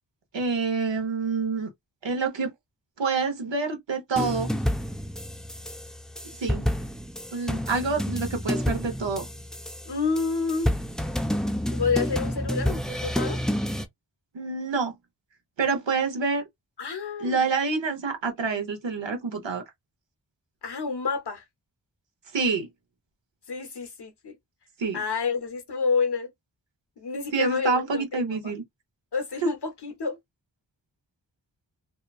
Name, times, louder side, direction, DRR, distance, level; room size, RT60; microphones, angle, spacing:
voice 1, 0.3-1.7 2.0-2.5 3.0-4.5 6.4-6.7 7.3-9.3 14.3-14.9 15.6-16.4 17.2-19.6 22.3-22.7 24.8-25.0 27.3-28.6 29.4-29.5, right 4 dB, 80° right, 0.8 m, -27 dB
sound 1, 4.2-13.9, equal, ahead, 0.3 m, -29 dB
voice 2, 9.9-10.7 11.7-13.4 16.8-17.4 20.6-21.4 23.5-24.3 24.9-26.3 27.0-28.5 29.1-30.2, left 5 dB, 65° left, 0.9 m, -29 dB
2.9 x 2.3 x 2.3 m
wide cardioid pair, 60°, 44 cm